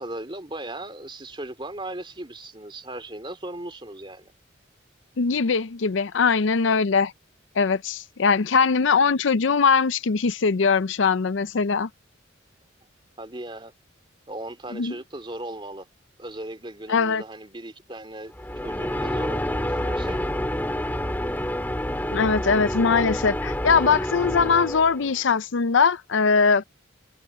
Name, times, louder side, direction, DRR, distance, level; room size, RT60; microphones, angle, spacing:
voice 1, 0.0-4.3 13.2-13.7 14.3-15.9 16.2-18.3 18.6-20.2, right 1 dB, 25° right, 3.1 m, -37 dB
voice 2, 5.2-7.1 7.6-11.9 14.7-14.9 16.9-17.2 22.1-26.6, left 5 dB, 75° left, 0.6 m, -21 dB
sound 1, 18.3-25.2, left 1 dB, 10° left, 2.9 m, -28 dB
head